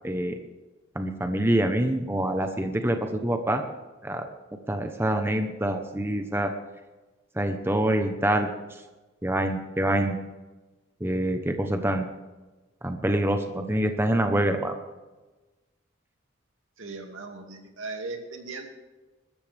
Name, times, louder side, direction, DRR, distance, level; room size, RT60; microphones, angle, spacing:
voice 1, 0.0-0.4 0.9-3.7 4.0-4.3 4.7-6.5 7.4-8.5 9.2-10.2 11.0-12.1 12.8-14.7, right 1 dB, 10° right, 5 dB, 0.9 m, -25 dB
voice 2, 16.8-18.7, right 3 dB, 80° right, 3 dB, 2.4 m, -38 dB
21.5 x 13.5 x 3.5 m, 1.2 s
head